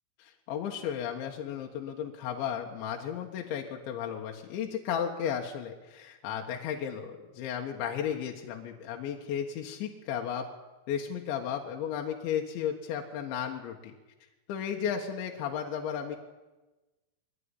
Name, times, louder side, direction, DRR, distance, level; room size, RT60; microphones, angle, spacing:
voice 1, 0.2-10.5 10.9-14.0 14.5-16.2, left 8 dB, 70° left, 1 dB, 3.7 m, -34 dB
23.0 x 16.0 x 10.0 m, 1.1 s
omnidirectional pair, 5.7 m